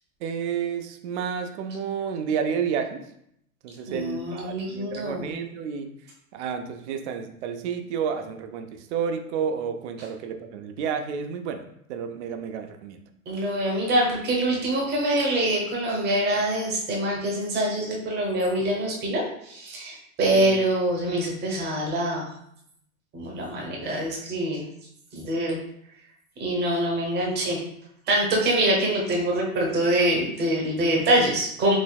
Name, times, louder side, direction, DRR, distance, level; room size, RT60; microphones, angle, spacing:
voice 1, 0.2-3.1 3.6-5.9 6.3-11.6 11.9-13.0 20.3-20.5, right 7 dB, 50° right, 7 dB, 0.5 m, -30 dB
voice 2, 3.9-5.3 13.3-22.3 23.1-24.6 25.1-25.6 26.4-27.6 28.1-31.8, right 1 dB, 20° right, -1 dB, 0.9 m, -25 dB
4.0 x 2.6 x 2.3 m, 0.73 s
hypercardioid pair, 125°, 45 cm